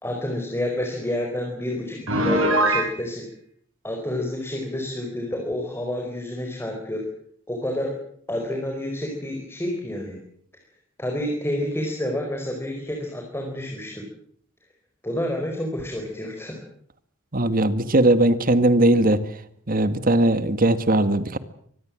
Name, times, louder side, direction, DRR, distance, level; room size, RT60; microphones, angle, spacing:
voice 1, 0.0-3.2 3.8-7.0 7.5-7.9 8.3-10.2 11.0-14.0 15.0-16.6, left 1 dB, 10° left, 2 dB, 4.8 m, -29 dB
Piano, 2.1-2.9, right 1 dB, 75° right, 6.4 m, -21 dB
voice 2, 17.3-19.2 19.7-21.4, right 1 dB, 45° right, 12 dB, 1.7 m, -19 dB
24.5 x 20.0 x 7.6 m, 0.63 s
head